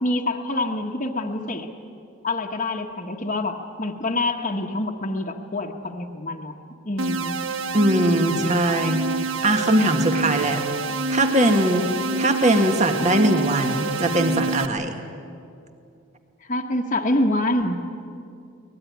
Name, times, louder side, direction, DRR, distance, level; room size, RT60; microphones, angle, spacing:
voice 1, 0.0-1.7 2.2-6.5 6.8-7.4 16.5-17.8, left 1 dB, 35° left, 2 dB, 1.3 m, -26 dB
sound 1, 7.0-14.7, right 3 dB, 70° right, 1.0 m, -27 dB
voice 2, 7.7-10.6 11.1-11.9 12.2-15.0, right 1 dB, 35° right, 5 dB, 1.8 m, -21 dB
23.0 x 19.5 x 9.6 m, 2.5 s
head